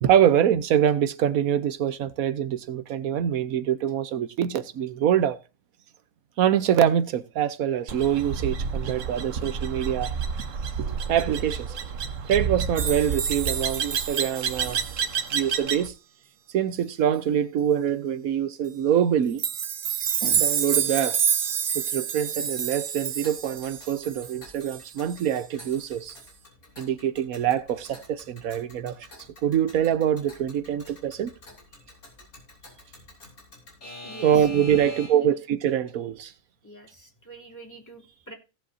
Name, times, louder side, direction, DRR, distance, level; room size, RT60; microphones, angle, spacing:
voice 1, 0.0-5.4 6.4-10.2 10.8-11.7 12.2-14.9 15.3-15.9 16.5-19.4 20.2-21.2 21.7-26.2 26.8-29.1 29.4-31.3 34.2-36.3, right 9 dB, 90° right, 1.3 m, -24 dB
sound 1, 7.9-15.9, right 6 dB, 65° right, 1.4 m, -30 dB
sound 2, 12.8-15.3 19.4-25.3 25.6-25.8 26.1-26.2, right 8 dB, 50° right, 0.8 m, -28 dB
Alarm / Clock, 23.2-35.4, left 2 dB, 90° left, 4.5 m, -47 dB
voice 2, 34.0-35.3 36.6-38.3, right 2 dB, 10° left, 3.0 m, -46 dB
17.5 x 7.7 x 2.7 m
omnidirectional pair, 1.5 m